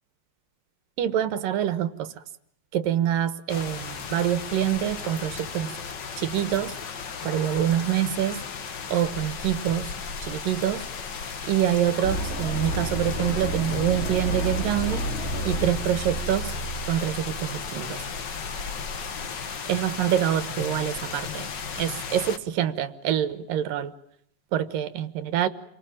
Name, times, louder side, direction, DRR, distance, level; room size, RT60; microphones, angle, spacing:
voice 1, 1.0-2.1 2.7-5.7 6.2-6.7 7.2-8.4 8.9-9.9 10.2-10.8 11.5-15.0 15.4-16.5 16.9-18.0 19.7-21.5 21.8-23.9 24.5-25.5, right 10 dB, 85° right, 13 dB, 3.0 m, -26 dB
sound 1, 3.5-22.4, left 6 dB, 50° left, 1.4 m, -35 dB
sound 2, 12.0-18.0, right 1 dB, 20° left, 5.1 m, -31 dB
28.5 x 24.0 x 8.8 m, 0.71 s
omnidirectional pair, 3.8 m